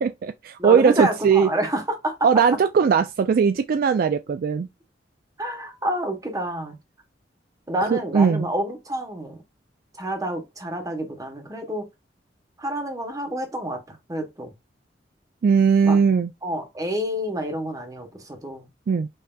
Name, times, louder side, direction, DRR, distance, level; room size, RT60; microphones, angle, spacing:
voice 1, 0.0-1.5 2.2-4.7 7.9-8.5 15.4-16.3 18.9-19.1, right 6 dB, 55° right, 0.3 m, -19 dB
voice 2, 0.6-2.1 5.4-6.7 7.7-9.4 10.0-11.9 12.6-14.5 15.8-16.0 16.4-18.7, right 1 dB, 20° right, 1.1 m, -28 dB
5.4 x 2.8 x 2.3 m
head